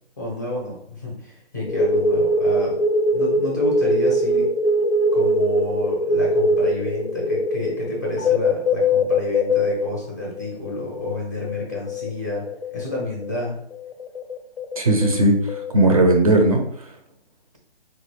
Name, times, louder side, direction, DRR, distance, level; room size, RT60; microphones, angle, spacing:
voice 1, 0.2-2.8 3.1-4.5 5.1-12.5 12.7-13.5, left 1 dB, 15° left, -3 dB, 0.5 m, -30 dB
sound 1, 1.7-9.9 10.4-13.4 13.7-16.2, left 1 dB, 65° left, 0.5 m, -22 dB
voice 2, 14.8-16.6, right 2 dB, 35° right, 3 dB, 0.4 m, -17 dB
3.9 x 2.2 x 3.2 m, 0.69 s
hypercardioid pair, 160°, 33 cm